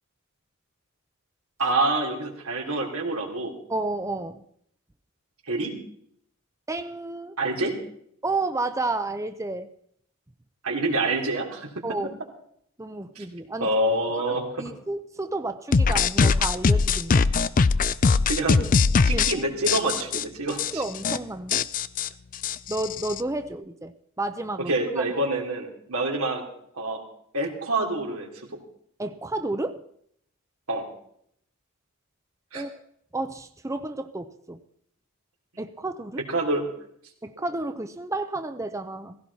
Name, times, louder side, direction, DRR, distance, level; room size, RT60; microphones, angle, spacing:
voice 1, 1.6-3.5 5.5-5.8 7.4-7.8 10.6-11.7 13.1-13.2 13.6-14.7 18.3-18.6 19.0-20.8 24.7-26.4 26.7-27.0 27.3-28.3 30.7-30.9 32.5-32.7 36.3-36.6, right 2 dB, 90° right, 1 dB, 3.4 m, -26 dB
voice 2, 3.7-4.4 6.7-7.3 8.2-9.7 11.8-12.1 12.8-13.7 14.2-17.3 19.1-19.4 20.5-21.7 22.7-23.9 24.2-25.0 29.0-29.8 32.5-32.7 33.1-34.6 35.6-36.2 37.2-39.2, right 2 dB, 15° right, 9 dB, 0.6 m, -31 dB
sound 1, 15.7-19.3 19.7-20.2 20.6-20.7 21.0-21.2 21.5-23.2, left 4 dB, 40° left, 0.5 m, -21 dB
17.0 x 16.5 x 4.2 m, 0.67 s
head